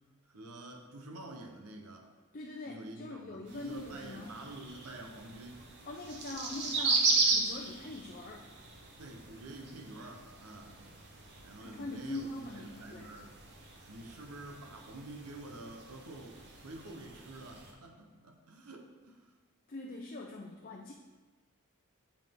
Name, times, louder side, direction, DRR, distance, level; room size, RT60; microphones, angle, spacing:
voice 1, 0.3-2.1 2.7-5.6 9.0-10.8 11.4-13.3 13.9-19.3, right 2 dB, 85° right, 2 dB, 0.9 m, -48 dB
voice 2, 2.3-4.3 5.9-8.5 11.6-13.1 19.7-20.9, left 2 dB, 40° left, 0 dB, 0.5 m, -43 dB
sound 1, 3.5-17.7, right 3 dB, 50° right, 1.0 m, -37 dB
7.3 x 5.7 x 3.6 m, 1.3 s
head